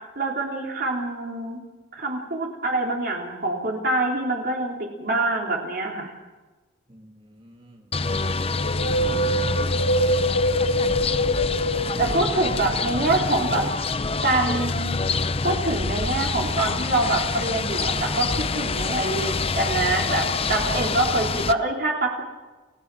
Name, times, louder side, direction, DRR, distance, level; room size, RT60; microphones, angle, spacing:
voice 1, 0.2-1.6 1.9-6.1 12.0-13.6 14.2-15.0 15.4-22.2, right 2 dB, 50° right, -1 dB, 3.7 m, -25 dB
voice 2, 6.9-8.0 11.9-12.6, equal, 25° right, 2 dB, 2.1 m, -48 dB
sound 1, 7.9-21.5, left 4 dB, 30° left, 0.7 m, -26 dB
Wind, 8.5-12.9 13.1-13.2, equal, 80° left, 3.8 m, -24 dB
30.0 x 17.0 x 6.3 m, 1.3 s
head